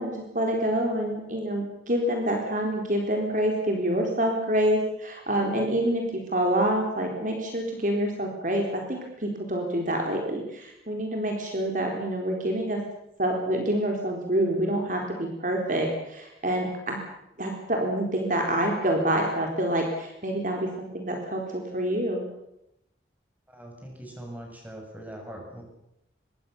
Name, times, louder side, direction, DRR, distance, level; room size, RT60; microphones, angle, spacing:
voice 1, 0.0-6.0 6.3-12.8 13.2-17.0 17.4-22.3, right 1 dB, 45° right, 1 dB, 4.0 m, -27 dB
voice 2, 23.5-25.6, right 1 dB, 10° right, 1 dB, 7.4 m, -41 dB
25.5 x 22.5 x 7.1 m, 0.82 s
head